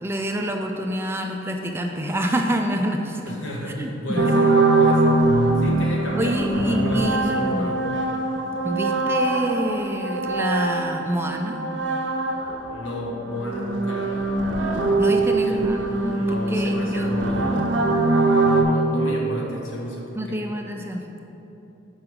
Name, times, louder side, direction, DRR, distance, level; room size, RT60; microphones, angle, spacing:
voice 1, 0.0-3.3 3.8-4.3 6.2-7.8 8.6-11.6 15.0-17.1 20.2-21.0, right 1 dB, 10° right, 3 dB, 0.3 m, -27 dB
voice 2, 3.3-5.2 5.6-7.9 12.7-14.3 15.0-15.6 16.1-17.9 18.4-20.4, left 1 dB, 80° left, -1 dB, 1.1 m, -32 dB
sound 1, 4.2-12.7 13.0-18.6, right 2 dB, 65° right, 0.6 m, -22 dB
5.0 x 4.7 x 6.0 m, 3.0 s
head